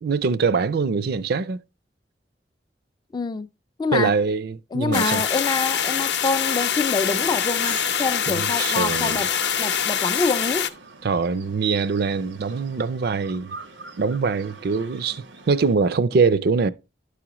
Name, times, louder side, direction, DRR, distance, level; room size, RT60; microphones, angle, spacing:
voice 1, 0.0-1.6 3.9-5.2 8.3-9.2 11.0-13.6 14.0-16.7, right 4 dB, 60° right, 0.4 m, -23 dB
voice 2, 3.1-3.5 3.8-4.1 4.7-9.3 9.6-10.7, left 4 dB, 25° left, 0.3 m, -26 dB
sound 1, 4.9-10.7, left 8 dB, 65° left, 0.6 m, -24 dB
sound 2, 7.0-15.7, right 4 dB, 80° right, 0.7 m, -42 dB
11.5 x 4.9 x 2.9 m
head